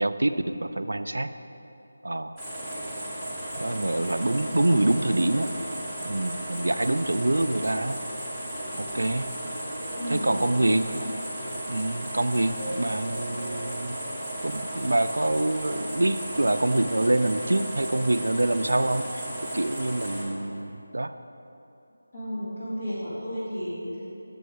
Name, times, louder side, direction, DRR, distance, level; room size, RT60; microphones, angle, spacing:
voice 1, 0.0-1.3 2.0-2.4 3.6-5.5 6.0-8.0 8.8-9.4 10.1-11.0 11.7-14.0 14.4-21.2, right 1 dB, 80° right, 10 dB, 0.3 m, -26 dB
sound 1, 2.4-20.2, right 1 dB, 5° left, 1.1 m, -35 dB
voice 2, 10.0-10.4 22.1-24.1, equal, 40° left, -11 dB, 1.8 m, -33 dB
6.9 x 5.3 x 4.9 m, 2.9 s
figure-of-eight pair, 170°, 0 cm